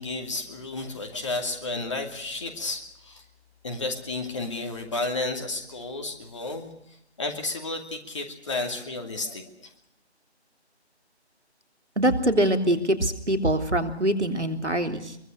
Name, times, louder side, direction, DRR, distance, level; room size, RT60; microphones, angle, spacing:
voice 1, 0.0-3.2 3.6-9.7, left 2 dB, 25° left, 4 dB, 2.6 m, -32 dB
voice 2, 11.9-15.2, right 1 dB, 85° right, 7 dB, 3.5 m, -24 dB
23.5 x 23.0 x 6.5 m, 0.76 s
figure-of-eight pair, 160°, 34 cm